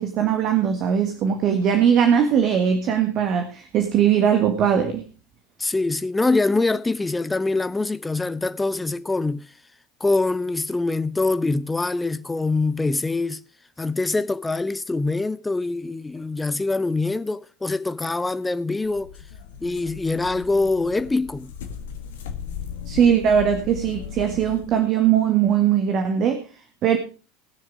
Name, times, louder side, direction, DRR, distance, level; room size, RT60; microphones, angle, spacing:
voice 1, 0.0-5.0 22.8-26.4 26.8-27.0, right 8 dB, 40° right, 1.6 m, -20 dB
voice 2, 5.6-9.4 10.0-13.4 13.8-19.1 19.6-21.5, left 3 dB, 10° left, 0.7 m, -24 dB
sound 1, 18.8-24.8, left 8 dB, 65° left, 1.6 m, -37 dB
19.5 x 6.5 x 4.8 m
figure-of-eight pair, 75°, 0 cm